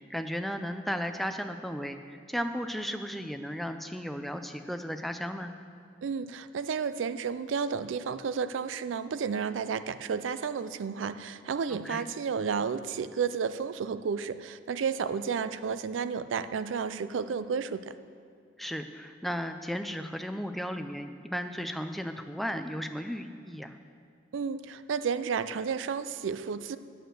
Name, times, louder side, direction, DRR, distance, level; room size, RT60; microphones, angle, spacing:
voice 1, 0.0-5.5 11.7-12.0 18.6-23.8, equal, ahead, 7 dB, 0.3 m, -35 dB
voice 2, 6.0-17.9 24.3-26.8, right 6 dB, 85° right, 13 dB, 0.4 m, -32 dB
9.1 x 6.3 x 6.4 m, 2.2 s
head